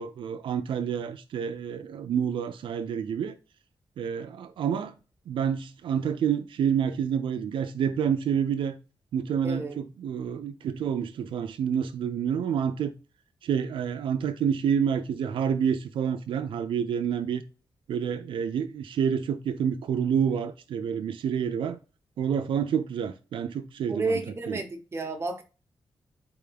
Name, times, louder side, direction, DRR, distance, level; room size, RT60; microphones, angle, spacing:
voice 1, 0.0-3.4 4.0-4.9 5.3-8.8 9.1-12.9 13.4-17.4 17.9-21.8 22.2-24.2 24.5-24.6, right 8 dB, 90° right, 0.4 m, -28 dB
voice 2, 9.4-9.8 23.9-25.4, right 3 dB, 30° right, 0.9 m, -31 dB
4.5 x 3.4 x 3.3 m
cardioid pair, 95°, 8 cm